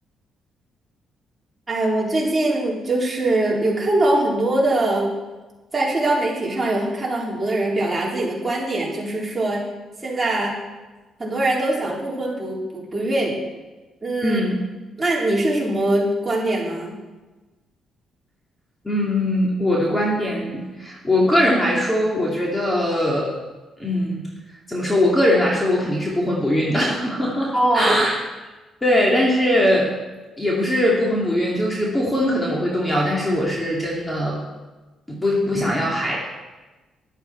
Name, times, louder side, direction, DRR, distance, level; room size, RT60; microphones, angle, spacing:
voice 1, 1.7-5.1 5.7-9.7 10.0-10.6 11.2-13.3 14.0-14.4 15.0-17.0 27.5-28.0, right 1 dB, 20° right, -5 dB, 4.2 m, -22 dB
voice 2, 14.2-14.6 18.8-23.3 23.8-24.2 24.7-28.2 28.8-29.9 30.4-34.4 35.1-36.2, left 1 dB, 15° left, -3 dB, 2.4 m, -21 dB
11.5 x 11.5 x 4.5 m, 1.2 s
cardioid pair, 90°, 0 cm